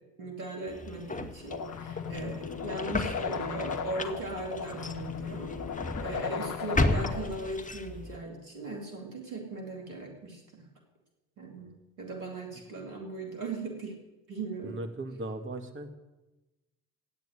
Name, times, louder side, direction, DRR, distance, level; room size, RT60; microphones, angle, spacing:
voice 1, 0.2-10.7 11.4-11.7 12.0-14.0 14.3-14.8, right 2 dB, 85° right, 2 dB, 2.8 m, -38 dB
sound 1, 0.7-8.2, left 2 dB, 20° left, 1.4 m, -34 dB
sound 2, 1.5-7.5, left 6 dB, 45° left, 1.4 m, -36 dB
voice 2, 14.6-15.9, right 2 dB, 30° right, 6 dB, 2.0 m, -38 dB
13.0 x 9.0 x 9.1 m, 1.1 s
hypercardioid pair, 50°, 42 cm